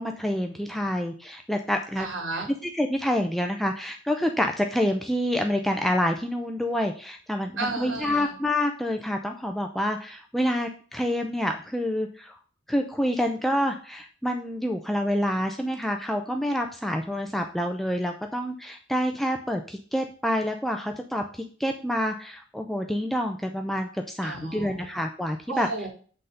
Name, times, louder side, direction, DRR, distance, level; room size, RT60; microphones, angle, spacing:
voice 1, 0.0-2.1 2.5-12.4 12.7-25.7, equal, ahead, 4 dB, 0.6 m, -27 dB
voice 2, 2.0-2.5 7.6-8.3 24.2-24.9 25.5-25.9, right 3 dB, 85° right, -1 dB, 3.9 m, -33 dB
7.9 x 4.0 x 6.5 m, 0.42 s
head